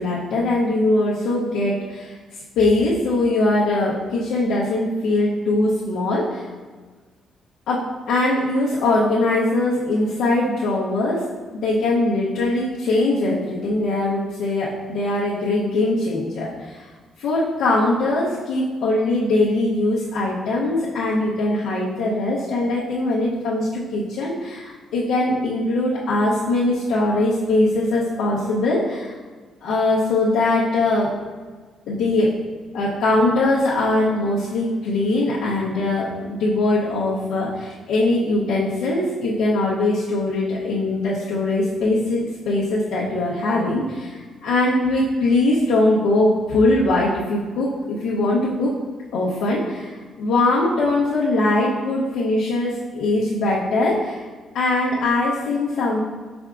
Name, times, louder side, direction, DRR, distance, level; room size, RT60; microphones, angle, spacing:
voice 1, 0.0-2.2 2.6-6.5 7.7-11.2 11.6-16.9 17.2-29.2 29.6-31.2 31.9-32.3 32.7-48.8 49.1-54.2 54.5-56.0, left 2 dB, 80° left, -8 dB, 0.7 m, -21 dB
5.9 x 3.5 x 2.4 m, 1.4 s
cardioid pair, 90°, 0 cm